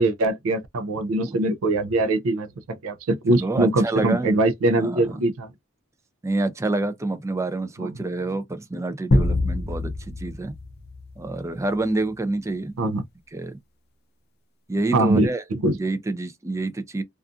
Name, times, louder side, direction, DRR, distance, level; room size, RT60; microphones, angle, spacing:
voice 1, 0.0-5.5 7.8-7.9 12.8-13.0 14.9-15.7, right 2 dB, 90° right, 0.4 m, -22 dB
voice 2, 3.4-4.3 4.8-5.2 6.2-10.5 11.2-12.8 13.3-13.6 14.7-15.4 15.8-17.0, right 2 dB, 15° right, 0.4 m, -27 dB
sound 1, 9.1-11.6, left 2 dB, 50° left, 0.5 m, -25 dB
2.5 x 2.4 x 2.4 m
head